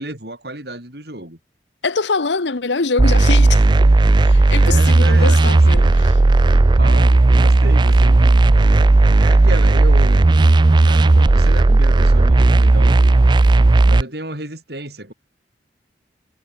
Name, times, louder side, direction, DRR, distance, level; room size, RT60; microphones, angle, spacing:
voice 1, 0.0-1.4 4.6-5.9 6.5-8.4 9.2-10.3 10.8-13.3 13.9-15.1, right 1 dB, 60° right, 7.3 m, -32 dB
voice 2, 1.8-3.7 4.2-6.1, left 4 dB, 85° left, 1.1 m, -23 dB
sound 1, 3.0-14.0, right 2 dB, 25° right, 0.4 m, -13 dB
head